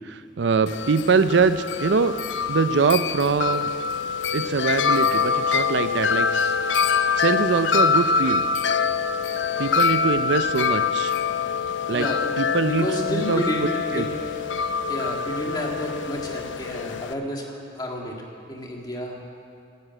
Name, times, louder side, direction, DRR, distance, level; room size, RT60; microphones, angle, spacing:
voice 1, 0.1-2.1 2.5-3.7 4.3-6.5 7.2-8.4 9.6-11.1 11.9-12.1 12.4-13.4 13.9-14.1, right 5 dB, 75° right, 12 dB, 0.5 m, -23 dB
Wind chime, 0.7-17.1, left 6 dB, 90° left, 0.5 m, -25 dB
voice 2, 11.9-14.5 14.9-19.2, equal, 20° left, 0 dB, 1.8 m, -31 dB
11.5 x 11.0 x 8.8 m, 2.5 s
head